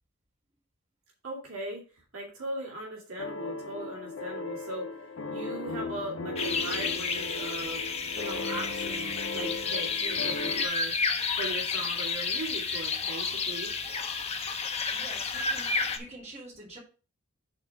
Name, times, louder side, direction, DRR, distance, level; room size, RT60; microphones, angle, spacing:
voice 1, 1.2-1.8 2.1-4.9 5.3-10.9 11.4-13.7, right 1 dB, 70° right, -2 dB, 2.4 m, -39 dB
sound 1, 3.2-10.6, left 3 dB, 60° left, 0.7 m, -37 dB
sound 2, 6.4-16.0, left 5 dB, 30° left, 0.7 m, -31 dB
voice 2, 14.9-16.8, right 1 dB, 30° right, -4 dB, 2.7 m, -46 dB
5.9 x 4.2 x 5.7 m, 0.34 s
head